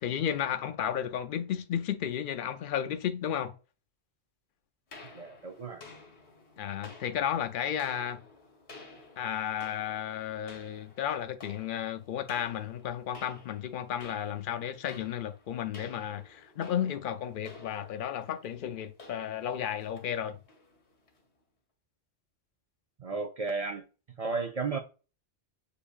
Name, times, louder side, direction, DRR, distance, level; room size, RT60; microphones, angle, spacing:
voice 1, 0.0-3.5 6.6-8.2 9.2-20.4, left 9 dB, 60° left, 0.6 m, -33 dB
sound 1, 4.9-21.3, left 3 dB, 85° left, 1.4 m, -53 dB
voice 2, 5.1-5.8 23.0-23.8 24.2-24.8, right 4 dB, 55° right, 0.4 m, -33 dB
6.7 x 2.6 x 2.4 m
omnidirectional pair, 1.1 m